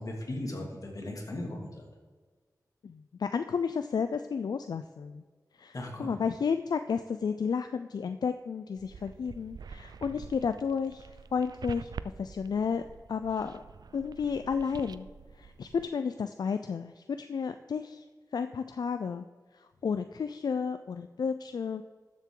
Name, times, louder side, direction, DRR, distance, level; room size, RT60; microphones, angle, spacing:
voice 1, 0.0-1.9 5.7-6.2, left 1 dB, 60° left, 0 dB, 2.3 m, -37 dB
voice 2, 2.8-5.2 5.6-11.9 12.2-12.8 13.1-13.6 13.9-15.1 15.3-18.0 18.3-19.3 19.5-21.8, left 6 dB, 85° left, 10 dB, 0.4 m, -32 dB
sound 1, 8.8-15.9, right 5 dB, 90° right, 0.4 m, -46 dB
12.5 x 7.3 x 3.8 m, 1.5 s
wide cardioid pair, 90°, 7 cm